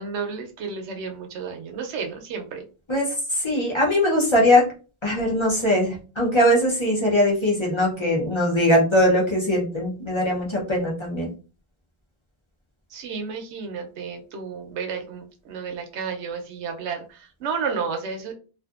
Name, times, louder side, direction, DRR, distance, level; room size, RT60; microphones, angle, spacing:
voice 1, 0.0-2.6 12.9-18.3, right 5 dB, 85° right, 5 dB, 0.9 m, -32 dB
voice 2, 3.4-4.6 5.0-11.3, left 1 dB, 30° left, -4 dB, 0.6 m, -21 dB
2.5 x 2.5 x 2.3 m, 0.36 s
omnidirectional pair, 1.1 m